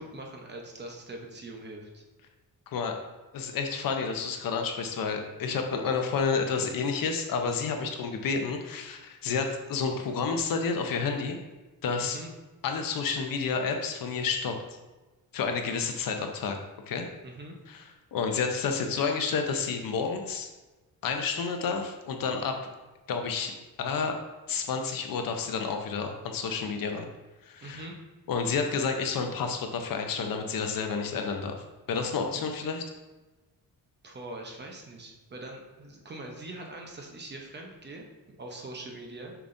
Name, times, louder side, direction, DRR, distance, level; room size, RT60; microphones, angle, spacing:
voice 1, 0.0-2.0 12.0-12.3 17.2-17.5 27.6-27.9 34.0-39.3, right 2 dB, 30° right, 1 dB, 0.8 m, -42 dB
voice 2, 3.3-11.4 11.8-12.2 12.6-14.6 15.3-16.6 16.9-17.1 17.7-17.8 18.1-20.5 21.0-22.6 23.1-23.5 23.8-24.2 24.5-27.1 27.4-27.9 28.3-32.8, left 5 dB, 65° left, 4 dB, 0.8 m, -30 dB
7.0 x 5.8 x 2.6 m, 1.1 s
wide cardioid pair, 180°, 36 cm